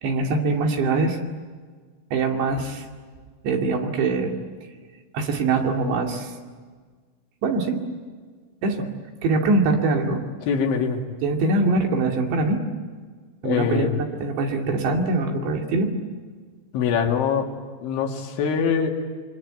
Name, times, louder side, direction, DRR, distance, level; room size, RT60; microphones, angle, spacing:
voice 1, 0.0-1.2 2.1-2.9 3.4-4.3 5.1-6.3 7.4-7.8 8.6-8.9 9.2-10.2 11.2-12.6 13.4-15.9, right 3 dB, 70° right, 2 dB, 4.6 m, -23 dB
voice 2, 10.5-11.0 13.4-13.9 16.7-17.5 17.8-18.9, left 6 dB, 80° left, 2 dB, 4.7 m, -23 dB
27.0 x 24.5 x 9.1 m, 1.5 s
omnidirectional pair, 5.4 m